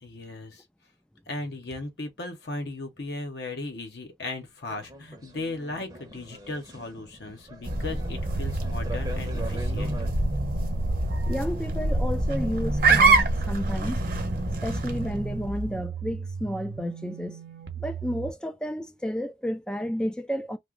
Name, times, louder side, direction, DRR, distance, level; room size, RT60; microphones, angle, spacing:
voice 1, 0.0-0.6 1.3-10.0, left 2 dB, 65° left, 0.8 m, -37 dB
sound 1, 4.7-10.1, right 1 dB, 20° right, 0.7 m, -42 dB
sound 2, 7.6-15.7, right 2 dB, 50° right, 1.0 m, -26 dB
sound 3, 8.2-18.3, right 4 dB, 70° right, 0.7 m, -36 dB
voice 2, 11.3-14.0 14.6-17.4 17.8-20.6, equal, 5° left, 0.3 m, -31 dB
2.9 x 2.1 x 3.6 m
head